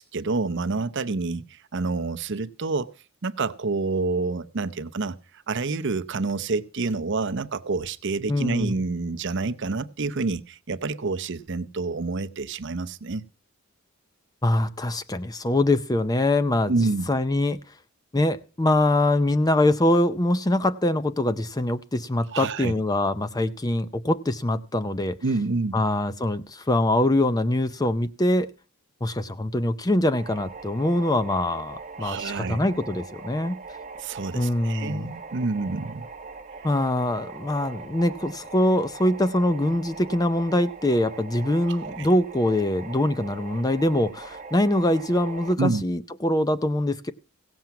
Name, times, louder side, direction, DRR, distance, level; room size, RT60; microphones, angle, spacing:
voice 1, 0.0-2.9 3.2-13.3 16.7-17.1 22.3-22.7 25.2-25.8 32.0-32.6 34.0-36.1 41.7-42.1 45.6-45.8, right 3 dB, 55° right, 0.7 m, -28 dB
voice 2, 8.3-8.8 14.4-16.7 17.1-17.6 18.1-25.2 25.7-28.5 29.0-33.6 34.3-35.1 36.6-47.1, left 1 dB, 15° left, 0.5 m, -23 dB
sound 1, 30.2-45.5, right 4 dB, 35° right, 1.0 m, -41 dB
16.5 x 7.6 x 5.8 m
head